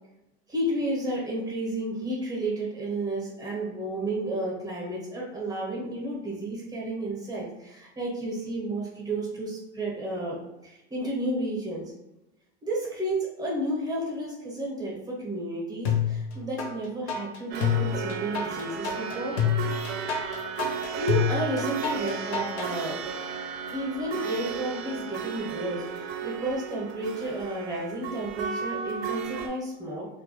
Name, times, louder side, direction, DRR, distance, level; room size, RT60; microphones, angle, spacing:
voice 1, 0.5-10.4 10.6-11.9 12.6-19.4 21.0-23.0 23.7-30.1, right 1 dB, 10° right, -3 dB, 0.8 m, -32 dB
sound 1, 15.8-16.7 17.1-22.7, left 8 dB, 85° left, 0.7 m, -27 dB
sound 2, 17.5-29.5, right 6 dB, 65° right, 0.5 m, -35 dB
2.3 x 2.0 x 2.9 m, 0.92 s
supercardioid pair, 120°, 33 cm